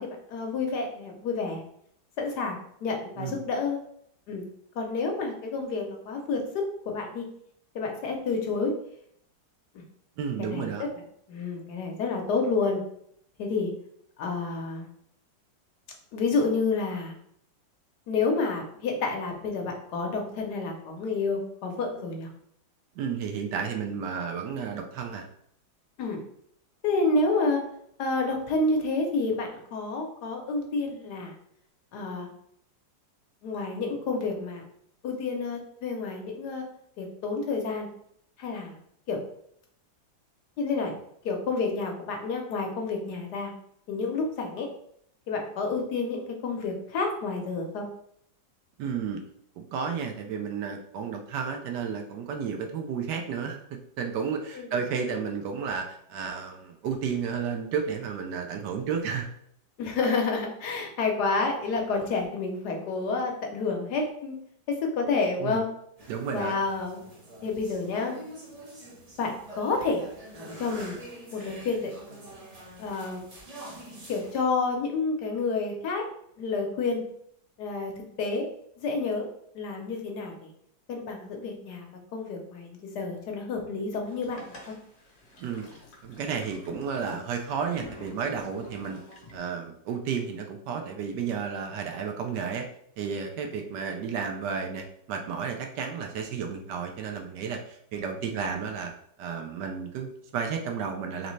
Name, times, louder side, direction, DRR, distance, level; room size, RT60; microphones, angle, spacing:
voice 1, 0.0-1.6 2.2-3.8 4.3-4.4 4.8-7.3 7.7-8.7 9.7-9.8 10.5-10.7 11.3-12.8 13.4-13.7 14.2-14.9 16.1-17.1 18.1-22.3 26.0-26.2 26.8-27.6 28.0-31.3 31.9-32.3 33.4-34.6 35.0-36.6 37.0-37.9 38.4-38.7 39.1-39.2 40.6-41.0 41.2-43.5 43.9-44.7 45.3-47.8 54.5-54.7 59.8-64.3 64.7-65.7 66.3-67.0 67.4-68.2 69.2-70.0 70.6-70.9 71.3-71.9 72.8-73.2 74.1-76.0 76.4-77.0 77.6-77.9 78.2-78.5 78.8-79.3 79.5-80.5 80.9-81.9 82.1-84.7, left 3 dB, 65° left, 2 dB, 1.2 m, -29 dB
voice 2, 10.2-10.9 22.9-25.3 48.8-49.2 49.6-59.3 65.4-65.6 66.1-66.6 85.4-85.6 86.0-89.0 89.3-92.7 93.0-98.9 99.2-101.3, right 6 dB, 75° right, 4 dB, 1.1 m, -32 dB
sound 1, 66.0-74.4, right 1 dB, 50° right, 0.4 m, -45 dB
Boat Water vehicle, 84.1-89.4, left 2 dB, 45° left, 1.0 m, -48 dB
3.9 x 3.1 x 3.1 m, 0.69 s
omnidirectional pair, 2.0 m